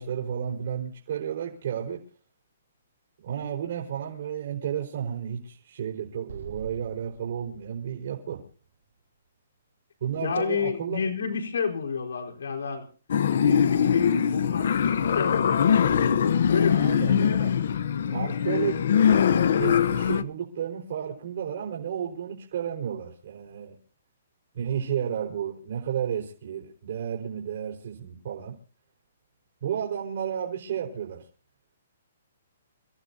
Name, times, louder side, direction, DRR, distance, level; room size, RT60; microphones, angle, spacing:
voice 1, 0.0-2.0 3.2-8.4 10.0-11.0 16.7-17.5 18.1-19.3 19.6-23.8 24.5-28.5 29.6-31.2, right 9 dB, 50° right, -1 dB, 4.7 m, -32 dB
Explosion, 6.3-9.6, right 5 dB, 75° right, 2.0 m, -46 dB
voice 2, 10.2-12.9 13.4-16.1 16.5-16.8, left 6 dB, 85° left, 4 dB, 4.7 m, -30 dB
sound 1, 13.1-20.2, left 8 dB, 60° left, 0.9 m, -22 dB
29.0 x 16.0 x 2.8 m, 0.40 s
hypercardioid pair, 170°, 0 cm